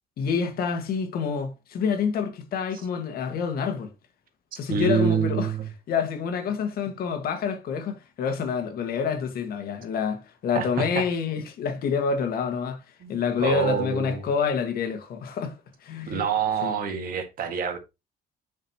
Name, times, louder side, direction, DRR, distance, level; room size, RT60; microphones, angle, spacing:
voice 1, 0.2-3.9 4.6-5.5 5.9-12.8 13.1-15.5 15.8-16.2 16.6-16.8, left 6 dB, 65° left, 1.8 m, -27 dB
voice 2, 4.7-5.6 10.5-11.1 13.0-14.2 16.1-17.8, right 6 dB, 55° right, 1.9 m, -26 dB
7.3 x 6.5 x 3.0 m
cardioid pair, 110°, 17 cm